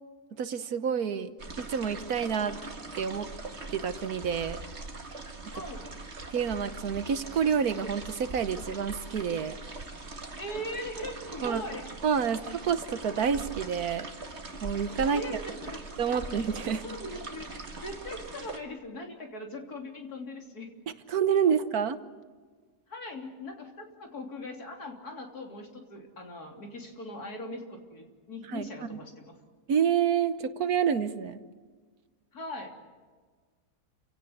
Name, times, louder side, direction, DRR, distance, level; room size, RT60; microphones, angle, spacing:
voice 1, 0.4-1.3 1.6-2.6 3.0-3.3 3.7-4.6 6.3-9.6 11.4-11.6 12.0-14.1 14.6-15.2 16.0-16.8 21.1-22.0 28.5-29.0 29.7-31.4, right 7 dB, 65° right, 12 dB, 1.4 m, -28 dB
sound 1, 1.4-18.6, right 3 dB, 40° right, 2.2 m, -42 dB
voice 2, 5.5-5.9 10.3-11.9 15.0-16.2 16.8-20.7 21.5-21.6 22.9-29.4 32.3-32.8, left 1 dB, 60° left, 2 dB, 3.7 m, -40 dB
29.0 x 17.0 x 8.1 m, 1.5 s
omnidirectional pair, 1.8 m